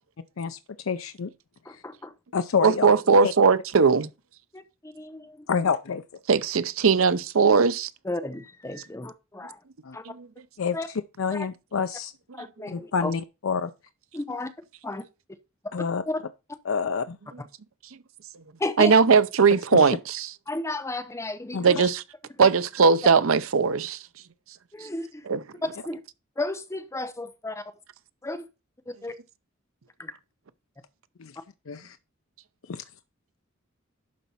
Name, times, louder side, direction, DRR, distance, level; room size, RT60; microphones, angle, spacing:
voice 1, 0.9-1.3 2.3-2.9 3.2-3.3 5.5-6.0 9.8-10.0 10.6-10.8 11.2-12.1 12.7-13.7 15.7-16.0 16.7-17.2 19.7-19.9 21.5-21.9 31.2-31.3 31.7-32.0 32.7-32.8, left 6 dB, 80° left, 0.5 m, -27 dB
voice 2, 1.6-2.1 4.5-5.3 8.0-9.6 9.9-10.0 10.7-10.9 11.3-11.5 12.3-13.1 14.1-14.5 14.8-15.0 16.1-16.2 18.6-18.9 20.5-21.8 22.3-22.5 24.7-25.3 25.6-26.0 26.4-27.6 28.2-28.5 28.9-29.1 30.0-30.1, left 2 dB, 15° left, 0.7 m, -33 dB
voice 3, 2.6-4.1 6.3-7.9 10.1-10.3 18.8-20.3 21.6-22.0 22.4-24.0 25.3-25.4, right 5 dB, 90° right, 0.7 m, -19 dB
11.5 x 4.2 x 5.6 m
head